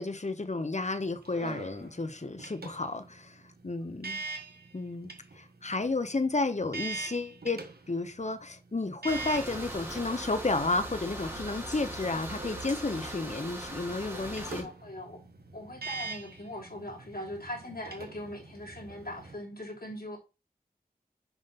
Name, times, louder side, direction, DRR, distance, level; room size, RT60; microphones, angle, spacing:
voice 1, 0.0-4.2 4.7-14.7, left 3 dB, 45° left, 0.9 m, -32 dB
sound 1, 0.8-19.3, right 3 dB, 90° right, 1.3 m, -44 dB
sound 2, 9.1-14.6, right 1 dB, 15° right, 3.4 m, -40 dB
voice 2, 14.1-15.2 15.5-20.2, left 1 dB, 75° left, 3.0 m, -41 dB
7.2 x 5.4 x 4.1 m
wide cardioid pair, 40°, 16 cm